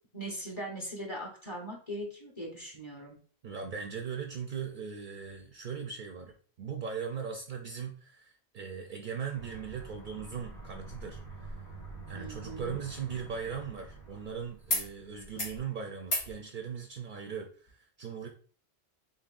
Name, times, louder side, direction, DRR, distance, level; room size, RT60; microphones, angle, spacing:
voice 1, 0.1-3.2 12.1-12.8, right 1 dB, 30° left, 0 dB, 0.9 m, -40 dB
voice 2, 3.4-11.7 12.1-18.3, right 6 dB, 60° right, 3 dB, 0.6 m, -39 dB
Aircraft, 9.3-15.4, right 3 dB, 85° left, 2.3 m, -47 dB
sound 1, 12.5-14.3 14.7-14.9 15.2-15.6 16.0-16.3 17.7-17.8, left 2 dB, 65° left, 1.8 m, -36 dB
4.0 x 3.6 x 2.5 m, 0.43 s
omnidirectional pair, 1.1 m